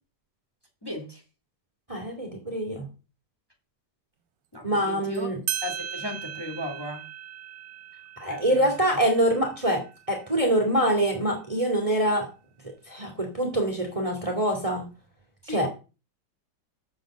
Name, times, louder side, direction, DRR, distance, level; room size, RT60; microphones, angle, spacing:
voice 1, 0.8-1.2 4.5-5.3 5.6-7.1 8.3-9.0 15.4-15.7, left 1 dB, 10° left, 2.8 m, -36 dB
voice 2, 1.9-2.9 4.6-5.4 8.2-12.3 12.6-14.9 15.5-15.7, right 1 dB, 20° right, 2.5 m, -25 dB
sound 1, 5.1-5.2 5.5-10.6, right 10 dB, 75° right, 1.4 m, -38 dB
7.7 x 7.3 x 7.4 m
omnidirectional pair, 2.0 m